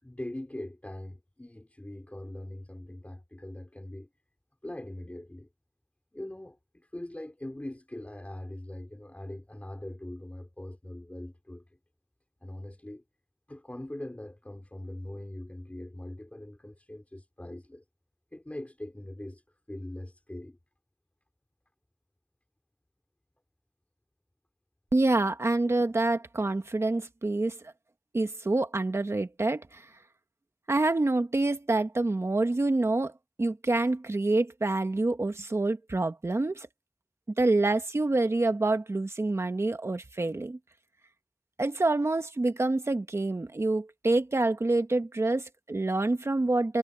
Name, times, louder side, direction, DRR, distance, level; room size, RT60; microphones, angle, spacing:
voice 1, 0.0-4.1 4.6-5.5 6.1-11.8 12.4-13.0 13.5-17.8 18.3-20.6, left 1 dB, 30° left, 4.2 m, -42 dB
voice 2, 24.9-27.7 28.1-29.8 30.7-33.1 33.4-36.7 37.4-40.6 41.6-46.8, right 2 dB, 80° right, 1.5 m, -27 dB
wide cardioid pair, 40°, 5 cm